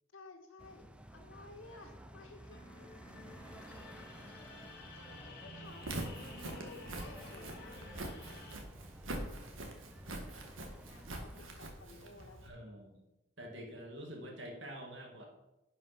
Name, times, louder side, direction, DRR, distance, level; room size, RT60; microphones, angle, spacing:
voice 1, 0.1-3.3 3.6-4.1 4.4-8.1 10.6-12.6, left 3 dB, 75° left, 3 dB, 1.8 m, -56 dB
sound 1, 0.6-11.4, right 1 dB, 5° right, 0.5 m, -55 dB
sound 2, 2.3-8.6, left 1 dB, 50° left, 2.1 m, -51 dB
Walk footsteps, 5.7-12.5, right 1 dB, 75° right, 1.7 m, -44 dB
voice 2, 12.4-13.0 13.4-15.3, equal, 60° right, 1 dB, 2.1 m, -47 dB
10.5 x 5.5 x 5.8 m, 0.98 s
head